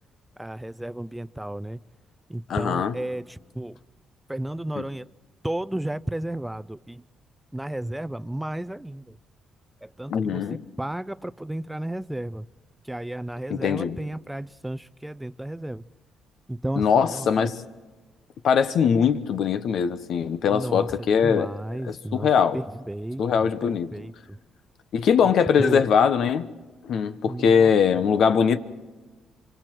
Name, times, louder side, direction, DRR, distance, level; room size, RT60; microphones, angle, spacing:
voice 1, 0.4-1.8 2.3-3.8 4.3-5.0 5.4-7.0 7.5-9.2 9.8-10.4 10.8-12.5 12.9-15.8 16.5-17.3 20.5-20.9 21.2-23.5 23.9-24.4 25.6-25.8 27.3-27.7, right 1 dB, 5° right, 0.6 m, -33 dB
voice 2, 2.5-3.0 4.7-4.8 10.1-10.6 13.5-14.0 16.7-17.6 18.4-21.5 21.8-22.6 23.2-23.9 24.9-26.5 26.8-28.6, left 7 dB, 70° left, 1.1 m, -21 dB
26.0 x 25.5 x 4.6 m
cardioid pair, 90°, 0 cm